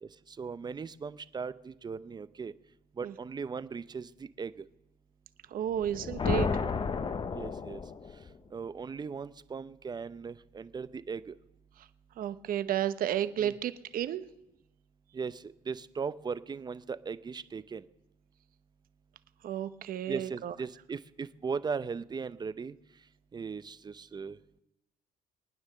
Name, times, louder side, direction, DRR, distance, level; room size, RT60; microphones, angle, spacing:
voice 1, 0.0-2.5 3.0-4.5 7.3-7.8 8.5-11.3 13.4-13.6 15.1-17.8 20.1-22.8 23.3-24.4, right 5 dB, 25° right, 15 dB, 0.7 m, -38 dB
voice 2, 5.5-6.5 12.2-14.2 19.4-20.5, right 10 dB, 60° right, 13 dB, 0.9 m, -32 dB
sound 1, 5.7-8.4, left 5 dB, 30° left, 0.8 m, -32 dB
22.0 x 9.7 x 6.6 m, 0.92 s
cardioid pair, 110°, 17 cm